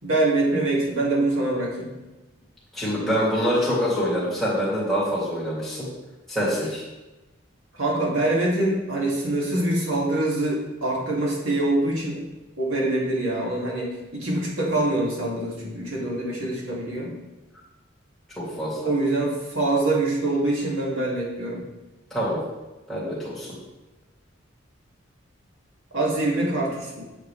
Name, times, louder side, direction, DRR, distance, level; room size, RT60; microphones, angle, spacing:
voice 1, 0.0-1.9 7.7-12.2 12.6-17.1 18.8-21.6 25.9-27.0, right 2 dB, 85° right, -4 dB, 2.6 m, -24 dB
voice 2, 2.7-5.9 6.3-6.8 18.4-18.9 22.1-22.4 22.9-23.5, equal, ahead, -9 dB, 2.9 m, -25 dB
8.7 x 6.8 x 3.4 m, 1.1 s
head